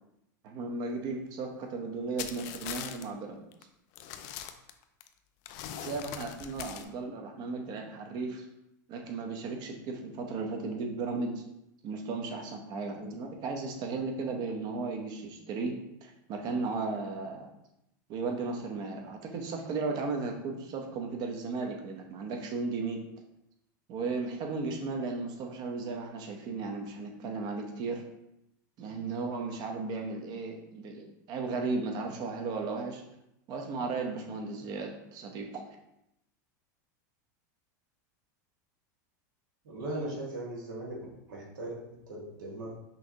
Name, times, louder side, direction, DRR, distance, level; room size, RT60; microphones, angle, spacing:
voice 1, 0.4-3.4 5.8-8.5 8.9-11.4 11.8-15.7 16.0-17.5 18.1-23.0 23.9-28.0 28.8-33.0 33.5-35.6, right 4 dB, 45° right, 3 dB, 0.8 m, -35 dB
sound 1, 2.2-3.0 3.5-3.6 4.0-5.1 5.5-6.8, left 10 dB, 55° left, 0.4 m, -41 dB
voice 2, 39.6-40.9 41.3-41.8 42.1-42.7, right 1 dB, 85° right, -4 dB, 1.6 m, -38 dB
5.5 x 2.8 x 2.8 m, 0.83 s
supercardioid pair, 130°, 10 cm